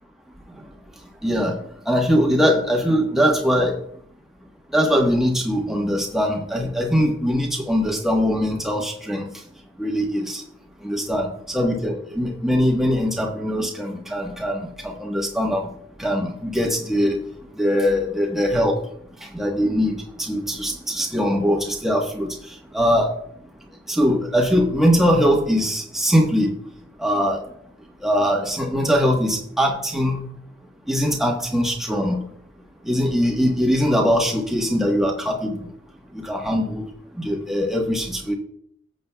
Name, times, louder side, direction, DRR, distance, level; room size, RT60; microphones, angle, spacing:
voice 1, 1.2-1.5 1.9-3.7 4.7-9.2 9.8-10.4 10.8-11.3 11.5-15.7 16.0-17.2 17.6-18.8 19.3-22.3 22.7-23.1 23.9-26.5 27.0-27.4 28.0-30.2 30.9-32.2 32.9-35.6 36.2-36.8 37.2-38.3, equal, ahead, -1 dB, 1.2 m, -21 dB
15.5 x 7.6 x 2.3 m, 0.67 s
head